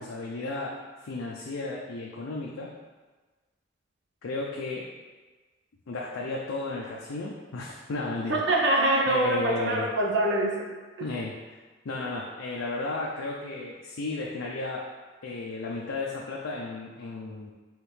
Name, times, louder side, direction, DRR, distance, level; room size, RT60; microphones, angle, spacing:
voice 1, 0.0-2.7 4.2-4.9 5.9-8.4 9.1-9.9 11.0-11.4 11.8-14.9 15.2-17.5, left 3 dB, 90° left, -2 dB, 0.5 m, -34 dB
voice 2, 8.3-10.5, right 1 dB, 65° right, -2 dB, 0.8 m, -24 dB
4.9 x 3.1 x 3.2 m, 1.3 s
head